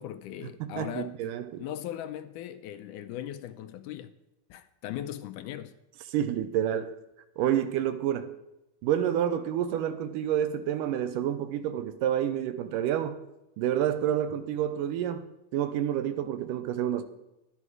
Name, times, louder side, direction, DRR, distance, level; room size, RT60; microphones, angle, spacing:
voice 1, 0.0-1.2 1.6-4.1 4.5-5.7, left 11 dB, 80° left, 2.0 m, -38 dB
voice 2, 0.6-1.6 6.1-6.9 7.4-8.3 8.8-13.2 13.6-15.2 15.5-17.0, right 10 dB, 80° right, 2.4 m, -29 dB
12.0 x 11.0 x 4.7 m
omnidirectional pair, 3.8 m